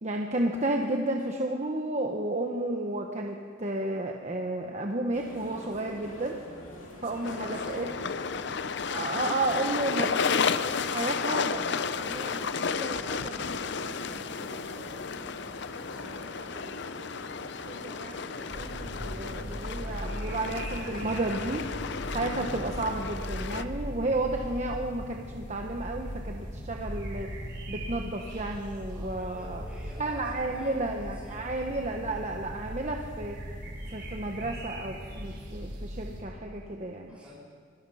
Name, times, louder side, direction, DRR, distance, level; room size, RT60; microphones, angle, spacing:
voice 1, 0.0-6.4 7.0-7.9 8.9-15.1 15.9-16.8 17.6-21.7 22.1-27.3 27.7-29.6 30.0-33.4 33.9-37.2, right 2 dB, 35° right, 2 dB, 1.2 m, -33 dB
sound 1, 5.1-23.0, left 1 dB, 85° left, 3.2 m, -45 dB
voice 2, 6.8-8.3 28.9-31.7 37.1-37.4, left 1 dB, 5° right, -6 dB, 5.9 m, -50 dB
sound 2, 7.2-23.6, left 6 dB, 60° left, 0.6 m, -33 dB
sound 3, 18.5-36.2, equal, 60° right, 4.7 m, -39 dB
25.5 x 18.0 x 5.7 m, 2.1 s
head